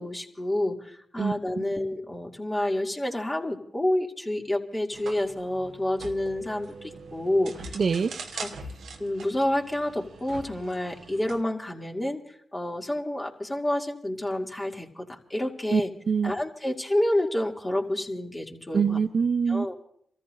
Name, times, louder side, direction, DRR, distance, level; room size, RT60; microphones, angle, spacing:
voice 1, 0.0-7.8 8.3-8.5 9.0-12.2 12.5-15.9 16.2-19.0 19.5-19.8, left 1 dB, 25° left, 0 dB, 2.5 m, -29 dB
sound 1, 4.9-11.4, right 3 dB, 80° right, 1.1 m, -42 dB
voice 2, 7.8-8.1 15.7-16.3 18.7-19.7, right 6 dB, 60° right, 9 dB, 0.6 m, -24 dB
28.5 x 14.0 x 2.6 m, 0.68 s
supercardioid pair, 45°, 0 cm